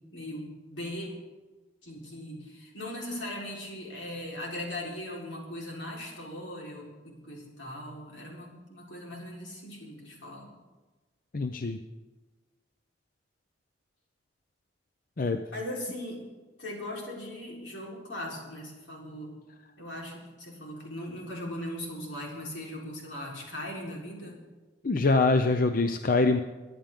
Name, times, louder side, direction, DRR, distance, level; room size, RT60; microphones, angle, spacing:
voice 1, 0.1-1.1 1.8-10.6 15.5-16.2 16.6-19.4 19.8-24.4, left 1 dB, 85° left, -2 dB, 4.2 m, -39 dB
voice 2, 11.3-11.8 15.2-15.4 24.8-26.4, left 3 dB, 50° left, 8 dB, 0.6 m, -24 dB
24.5 x 10.5 x 3.7 m, 1.3 s
head